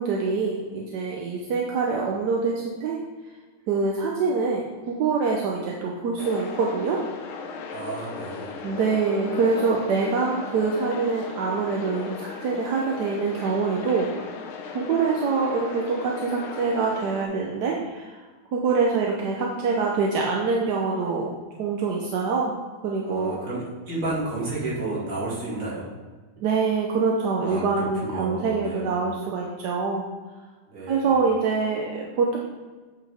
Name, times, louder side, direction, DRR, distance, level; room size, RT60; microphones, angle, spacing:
voice 1, 0.0-3.0 3.7-7.0 8.6-14.2 14.7-18.2 18.5-21.3 21.6-22.5 22.8-23.4 26.4-30.1 30.9-32.4, right 4 dB, 65° right, -1 dB, 1.1 m, -25 dB
sound 1, 6.2-17.3, left 5 dB, 75° left, 1.6 m, -37 dB
voice 2, 7.7-8.6 23.0-25.9 27.4-29.1 30.7-31.2, right 2 dB, 40° right, -7 dB, 2.6 m, -32 dB
8.3 x 5.6 x 3.5 m, 1.3 s
omnidirectional pair, 2.4 m